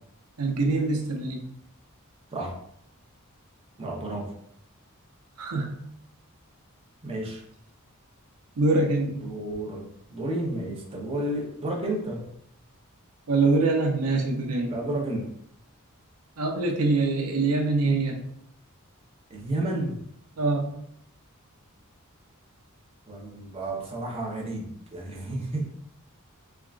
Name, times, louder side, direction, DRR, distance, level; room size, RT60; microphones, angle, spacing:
voice 1, 0.4-1.4 5.4-5.8 8.6-9.2 13.3-14.8 16.4-18.2 20.4-20.7, right 3 dB, 90° right, 3 dB, 0.6 m, -24 dB
voice 2, 3.8-4.3 7.0-7.4 9.2-9.8 10.1-12.2 14.7-15.3 19.3-19.9 23.1-25.7, right 1 dB, 25° right, -1 dB, 0.7 m, -31 dB
3.7 x 3.4 x 2.4 m, 0.70 s
head